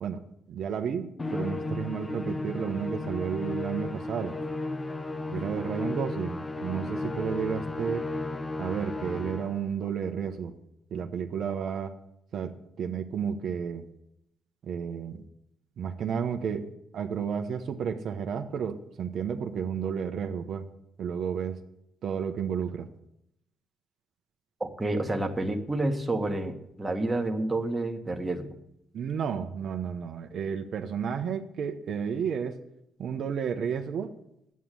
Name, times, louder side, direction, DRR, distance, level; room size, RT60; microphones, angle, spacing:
voice 1, 0.0-4.4 5.3-8.1 8.6-10.5 10.9-11.9 12.3-13.9 14.6-15.2 15.8-20.7 21.0-21.6 22.0-22.9 28.9-32.6 33.0-34.1, right 7 dB, 65° right, 6 dB, 0.9 m, -32 dB
Musical instrument, 1.2-9.7, left 2 dB, 20° left, 0.7 m, -34 dB
voice 2, 24.6-28.5, right 2 dB, 15° right, 4 dB, 1.5 m, -29 dB
9.3 x 8.4 x 7.6 m, 0.79 s
cardioid pair, 90°, 0 cm